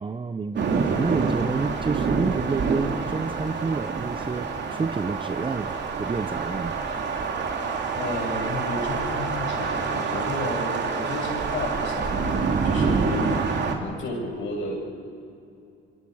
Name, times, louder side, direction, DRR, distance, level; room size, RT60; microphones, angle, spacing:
voice 1, 0.0-6.8 12.8-13.1, right 4 dB, 25° right, 10 dB, 0.7 m, -29 dB
sound 1, 0.6-13.8, right 5 dB, 60° right, 2.9 m, -27 dB
voice 2, 8.0-13.4 13.8-14.8, left 2 dB, 75° left, 0 dB, 7.4 m, -32 dB
29.0 x 24.5 x 4.8 m, 2.6 s
cardioid pair, 90°, 20 cm